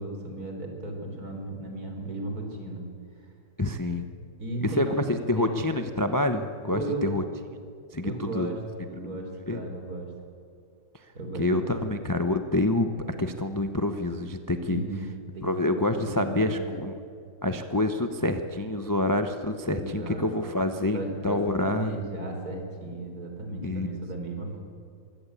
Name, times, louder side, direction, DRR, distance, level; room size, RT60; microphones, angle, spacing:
voice 1, 0.0-2.9 4.4-5.0 5.4-5.6 6.7-7.1 8.0-8.6 8.9-10.1 11.1-12.0 14.7-16.7 19.7-20.3 20.9-24.6, right 2 dB, 45° right, 2 dB, 4.3 m, -35 dB
voice 2, 3.6-4.1 4.6-7.2 7.9-8.5 9.0-9.2 9.5-9.6 11.3-12.9 13.2-14.8 15.4-16.9 17.4-21.9 23.6-24.0, left 1 dB, 35° left, 7 dB, 0.3 m, -27 dB
23.0 x 16.5 x 8.4 m, 2.4 s
omnidirectional pair, 2.2 m